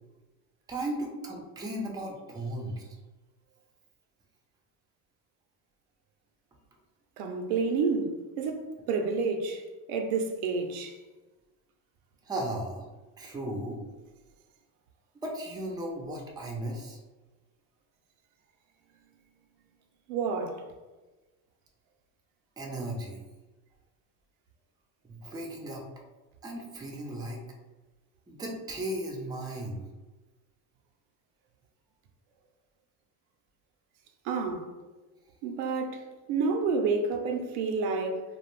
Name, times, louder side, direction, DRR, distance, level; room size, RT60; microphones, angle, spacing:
voice 1, 0.7-2.8 12.3-12.8 13.2-13.8 15.2-17.0 22.6-23.2 25.1-25.8 26.4-27.4 28.3-29.8, right 1 dB, 10° right, 0.4 m, -36 dB
voice 2, 7.2-9.6 9.9-11.0 20.1-20.6 34.3-34.7 35.4-38.2, right 4 dB, 85° right, 0.5 m, -29 dB
2.4 x 2.1 x 3.0 m
supercardioid pair, 95°, 44 cm